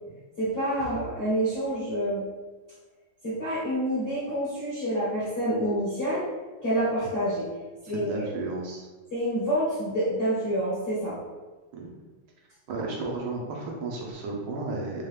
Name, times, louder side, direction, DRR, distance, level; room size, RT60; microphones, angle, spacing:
voice 1, 0.4-2.2 3.2-6.3 6.6-7.5 7.9-8.2 9.1-11.2, right 1 dB, 35° left, -9 dB, 1.0 m, -27 dB
voice 2, 7.8-8.9 11.7-11.9 12.7-15.1, right 3 dB, 75° right, -1 dB, 1.6 m, -33 dB
4.6 x 2.4 x 3.2 m, 1.3 s
omnidirectional pair, 2.3 m